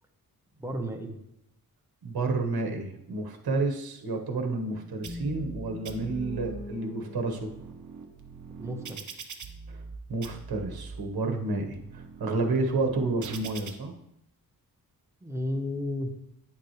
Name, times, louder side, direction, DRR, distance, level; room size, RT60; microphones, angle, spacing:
voice 1, 0.6-1.2 8.6-9.2 15.2-16.1, left 1 dB, 5° right, 2 dB, 1.0 m, -33 dB
voice 2, 2.0-7.5 9.7-9.8 10.1-13.9, right 3 dB, 75° right, 3 dB, 1.4 m, -30 dB
sound 1, 4.7-8.8, left 2 dB, 20° left, 2.3 m, -43 dB
sound 2, 5.0-5.6 5.8-6.6 7.1-9.9 10.2-10.9 11.5-13.7, right 5 dB, 50° right, 0.9 m, -43 dB
9.6 x 7.2 x 3.3 m, 0.81 s
wide cardioid pair, 145°, 37 cm